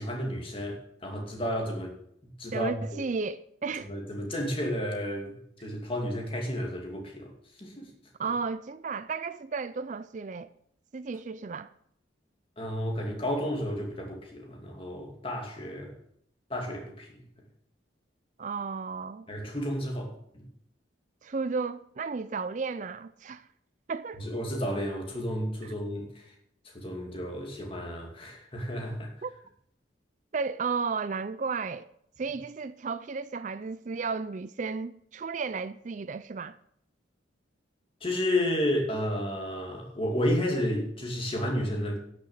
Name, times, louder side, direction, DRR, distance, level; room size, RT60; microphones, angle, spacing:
voice 1, 0.0-1.9 2.4-2.8 3.9-7.3 7.6-7.9 12.6-15.9 16.5-17.2 19.3-20.5 24.2-26.3 26.6-29.1 38.0-42.0, equal, 30° left, 2.5 m, -32 dB
voice 2, 2.5-3.9 8.2-10.5 10.9-11.7 18.4-19.3 21.2-23.5 23.9-24.2 25.6-25.7 29.2-29.3 30.3-31.9 32.2-36.6, right 4 dB, 40° right, 0.4 m, -33 dB
12.0 x 6.6 x 7.5 m
head